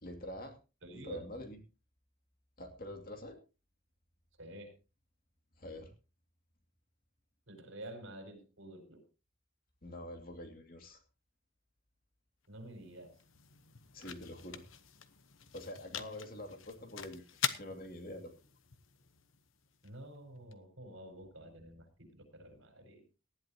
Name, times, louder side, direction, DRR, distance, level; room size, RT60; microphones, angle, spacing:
voice 1, 0.0-0.6 0.9-1.6 2.6-3.4 5.6-5.9 9.8-11.0 13.9-14.6 15.5-18.3, left 1 dB, 45° left, 5 dB, 2.5 m, -46 dB
voice 2, 0.8-1.2 4.4-4.7 7.5-9.0 12.5-13.1 19.8-23.0, right 1 dB, 65° right, 6 dB, 5.2 m, -49 dB
sound 1, 12.4-20.5, left 9 dB, 70° left, 1.0 m, -44 dB
18.5 x 12.0 x 2.9 m, 0.31 s
head